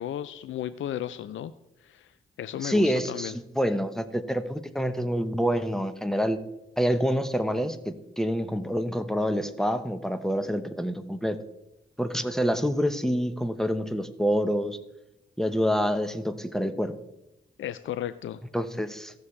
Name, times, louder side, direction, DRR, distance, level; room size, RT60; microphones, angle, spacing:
voice 1, 0.0-1.5 1.8-2.1 2.4-3.3 17.6-18.4, left 11 dB, 75° left, 14 dB, 0.4 m, -34 dB
voice 2, 2.6-6.4 6.8-11.4 12.0-14.8 15.4-16.9 18.5-19.1, equal, ahead, 9 dB, 0.9 m, -27 dB
15.5 x 7.1 x 3.2 m, 0.90 s
cardioid pair, 55°, 21 cm